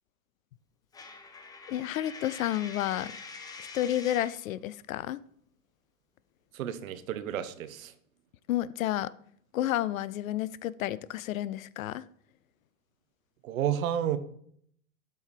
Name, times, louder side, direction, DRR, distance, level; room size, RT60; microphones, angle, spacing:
Coin (dropping), 0.9-4.4, left 4 dB, 10° left, 0.5 m, -45 dB
voice 1, 1.7-3.2 3.7-5.2 8.5-9.1 9.5-12.0, left 13 dB, 65° left, 0.5 m, -31 dB
voice 2, 6.5-7.9 13.4-14.2, right 10 dB, 65° right, 1.0 m, -31 dB
12.5 x 4.6 x 3.3 m
hypercardioid pair, 110°, 44 cm